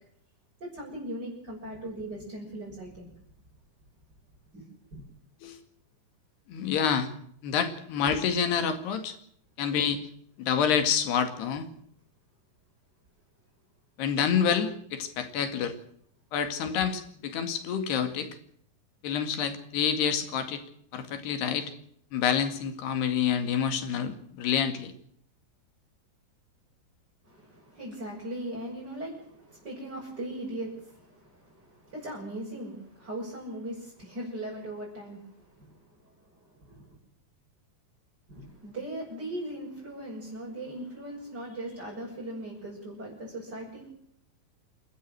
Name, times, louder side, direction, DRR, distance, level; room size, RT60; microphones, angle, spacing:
voice 1, 0.6-3.1 4.5-4.6 4.9-5.1 27.3-37.0 38.3-43.9, right 1 dB, 25° right, -5 dB, 7.5 m, -39 dB
voice 2, 6.5-7.1 7.4-9.2 9.6-10.0 10.4-11.7 14.0-15.7 16.3-18.3 19.0-20.6 20.9-21.7 22.1-24.9, left 7 dB, 85° left, 8 dB, 4.3 m, -28 dB
28.5 x 13.0 x 7.7 m, 0.66 s
omnidirectional pair, 4.6 m